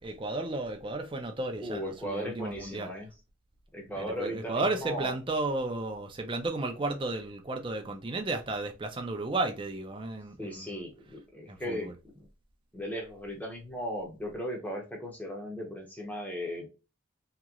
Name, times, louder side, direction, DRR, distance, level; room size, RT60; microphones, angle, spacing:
voice 1, 0.0-2.9 4.0-10.8 11.5-11.9, right 2 dB, 25° right, 0.5 m, -33 dB
voice 2, 1.6-3.1 3.7-5.1 10.4-11.9 12.7-16.7, equal, 10° left, 0.8 m, -37 dB
3.0 x 2.9 x 2.4 m
head